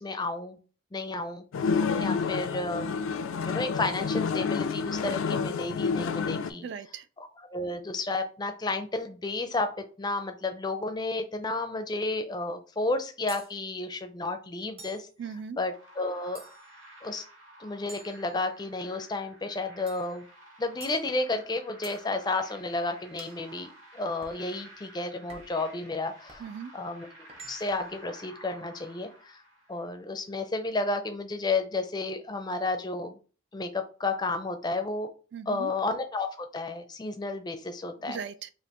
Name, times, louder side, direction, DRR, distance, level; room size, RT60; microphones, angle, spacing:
voice 1, 0.0-0.6 0.9-2.9 3.4-6.6 7.2-9.7 10.0-15.1 15.6-16.4 17.0-17.2 17.6-20.3 20.6-23.7 23.9-26.4 26.7-27.1 27.5-29.4 29.7-33.2 33.5-35.1 35.5-38.2, left 2 dB, 20° left, 0.4 m, -32 dB
sound 1, 1.5-6.5, left 5 dB, 85° left, 0.3 m, -29 dB
voice 2, 6.6-7.1 15.2-15.6 26.4-26.7 35.3-35.7 38.1-38.5, right 6 dB, 55° right, 0.3 m, -38 dB
sound 2, 13.3-13.5 14.8-15.1 16.3-16.8 17.9-18.8 19.9-20.1 20.8-21.0 21.8-22.0 23.2-23.4 24.2-24.4 25.3-25.6 26.3-26.5 27.3-27.9, right 4 dB, 30° right, 0.7 m, -49 dB
sound 3, 15.7-30.0, right 1 dB, 80° right, 2.1 m, -52 dB
5.2 x 2.5 x 2.9 m
head